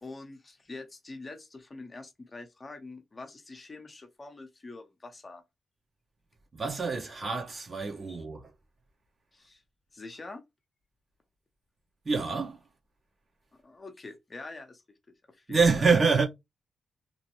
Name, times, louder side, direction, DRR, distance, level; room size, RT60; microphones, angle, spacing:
voice 1, 0.0-5.4 8.1-8.2 9.3-9.6 9.9-10.4 13.6-14.8 15.1-15.9, left 3 dB, 35° left, 0.8 m, -45 dB
voice 2, 6.5-8.5 12.0-12.6 15.5-16.3, right 4 dB, 40° right, 1.3 m, -26 dB
2.9 x 2.2 x 3.0 m
cardioid pair, 60°, 0 cm